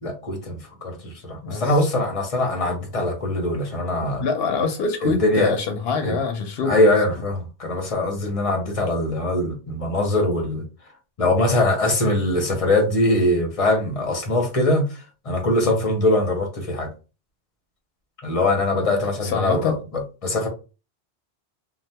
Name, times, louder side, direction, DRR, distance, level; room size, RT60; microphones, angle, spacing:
voice 1, 0.0-4.2 5.0-5.5 6.0-6.2 6.7-10.6 11.2-16.9 18.2-20.5, left 1 dB, 35° left, 0.8 m, -22 dB
voice 2, 1.4-1.9 4.2-6.9 18.8-19.7, left 5 dB, 75° left, 0.8 m, -25 dB
2.8 x 2.1 x 3.3 m
omnidirectional pair, 1.1 m